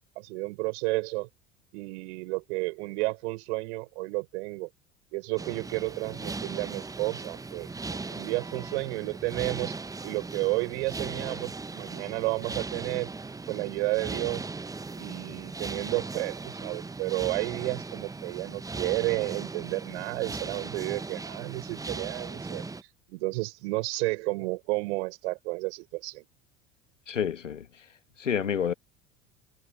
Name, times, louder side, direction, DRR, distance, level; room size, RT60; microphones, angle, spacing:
voice 1, 0.1-1.3 1.7-4.7 5.1-7.7 8.1-9.7 10.0-13.1 13.5-14.5 14.9-22.6 23.1-26.2, right 25 dB, 65° right, 5.0 m, -31 dB
sound 1, 5.4-22.8, right 3 dB, 10° right, 0.7 m, -38 dB
voice 2, 27.1-27.8 28.2-28.7, left 8 dB, 90° left, 1.7 m, -29 dB
hypercardioid pair, 70°, 36 cm